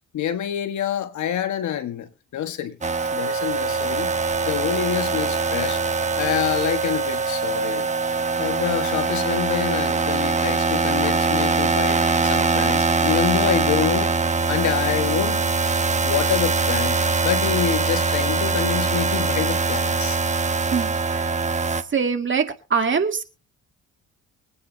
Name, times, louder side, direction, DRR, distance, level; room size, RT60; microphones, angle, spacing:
voice 1, 0.1-2.8 3.1-4.2 4.4-5.8 6.2-7.9 8.4-14.1 14.5-15.4 16.0-20.2, left 9 dB, 70° left, 1.5 m, -26 dB
sound 1, 2.8-21.8, right 4 dB, 25° right, 1.0 m, -22 dB
voice 2, 20.7-21.3 21.9-22.4 22.7-23.2, right 5 dB, 40° right, 2.2 m, -22 dB
24.0 x 9.6 x 2.8 m
cardioid pair, 90°, 30 cm